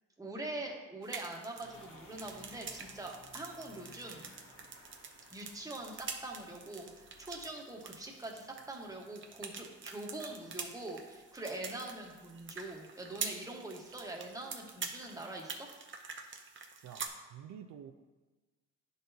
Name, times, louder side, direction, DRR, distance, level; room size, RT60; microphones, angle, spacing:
voice 1, 0.2-4.3 5.3-15.7, right 2 dB, 10° right, -1 dB, 1.2 m, -44 dB
sound 1, 1.0-17.1, right 5 dB, 40° right, 0.7 m, -46 dB
sound 2, 1.6-15.2, left 1 dB, 45° left, 1.6 m, -61 dB
voice 2, 16.8-17.9, right 9 dB, 75° right, 7 dB, 0.5 m, -49 dB
10.0 x 3.9 x 2.7 m, 1.2 s
cardioid pair, 90°, 30 cm